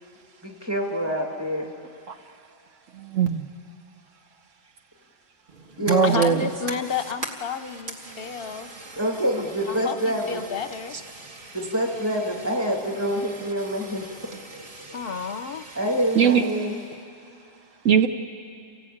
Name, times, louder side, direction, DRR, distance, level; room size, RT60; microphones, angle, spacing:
voice 1, 0.4-1.7 5.8-6.4 8.9-10.4 11.5-14.1 14.5-14.9 15.7-16.8, equal, 10° right, 1 dB, 2.5 m, -26 dB
voice 2, 2.9-3.5 5.9-6.5 8.1-8.2 16.1-16.4 17.8-18.1, right 7 dB, 75° right, 7 dB, 1.2 m, -20 dB
Fire, 5.5-17.0, right 2 dB, 40° right, 1.8 m, -42 dB
voice 3, 6.0-8.7 9.7-11.0 14.9-15.7, left 6 dB, 55° left, 11 dB, 0.8 m, -31 dB
28.5 x 17.5 x 8.6 m, 2.5 s
omnidirectional pair, 1.3 m